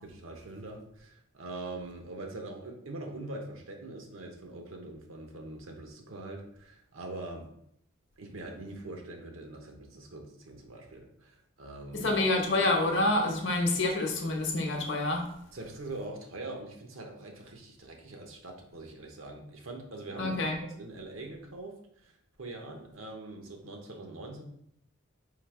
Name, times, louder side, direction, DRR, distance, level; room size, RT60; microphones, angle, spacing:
voice 1, 0.0-7.5 8.2-12.1 15.5-22.1 22.4-24.4, right 2 dB, 75° right, 2 dB, 0.8 m, -43 dB
voice 2, 11.9-15.3 20.2-20.6, left 2 dB, 55° left, 2 dB, 0.8 m, -27 dB
3.8 x 2.8 x 4.6 m, 0.72 s
head